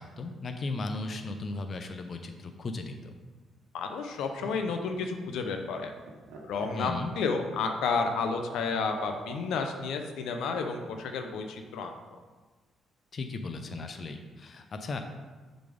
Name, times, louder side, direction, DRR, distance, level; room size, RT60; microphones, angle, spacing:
voice 1, 0.0-3.1 6.7-7.1 13.1-15.0, left 3 dB, 45° left, 6 dB, 0.6 m, -36 dB
voice 2, 3.7-5.9 6.5-11.9, left 4 dB, 85° left, 5 dB, 0.7 m, -31 dB
Laughter, 4.0-9.7 11.0-11.6, right 4 dB, 90° right, 1.1 m, -46 dB
6.7 x 4.1 x 5.1 m, 1.3 s
cardioid pair, 90°, 0 cm